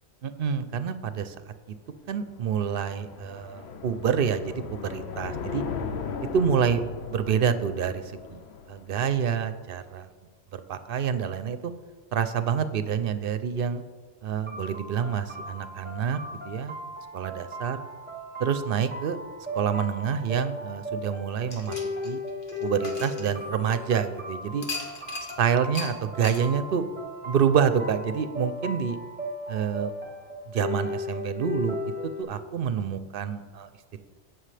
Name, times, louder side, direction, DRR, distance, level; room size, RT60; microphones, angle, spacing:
voice 1, 0.2-1.3 1.7-1.8 2.1-5.6 6.2-6.8 7.1-10.1 10.5-11.7 12.1-13.8 14.2-16.2 16.4-16.8 17.1-17.8 18.4-19.2 19.5-21.8 22.0-22.2 22.6-24.6 25.4-26.9 27.3-29.0 29.5-29.9 30.5-31.8 32.0-34.0, right 7 dB, 65° right, 11 dB, 0.8 m, -27 dB
sound 1, 1.9-9.3, left 6 dB, 85° left, 1.0 m, -37 dB
sound 2, 14.5-32.2, left 1 dB, 10° right, 1.1 m, -37 dB
sound 3, 21.5-23.9 24.6-25.4 25.7-25.9 26.2-26.4, left 3 dB, 55° left, 1.5 m, -37 dB
16.5 x 6.2 x 3.3 m, 1.4 s
omnidirectional pair, 1.1 m